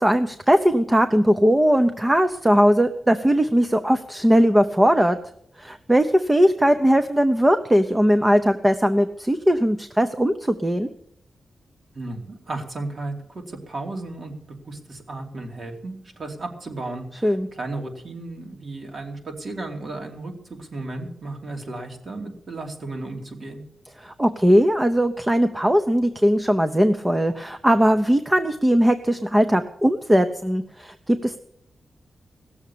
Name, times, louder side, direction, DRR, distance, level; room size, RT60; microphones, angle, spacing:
voice 1, 0.0-5.2 5.6-10.9 17.2-17.5 24.0-31.4, equal, 15° right, 8 dB, 0.7 m, -19 dB
voice 2, 11.9-14.3 14.6-23.6, right 2 dB, 50° right, 2 dB, 2.8 m, -34 dB
16.5 x 7.2 x 8.5 m, 0.73 s
wide cardioid pair, 110°, 0 cm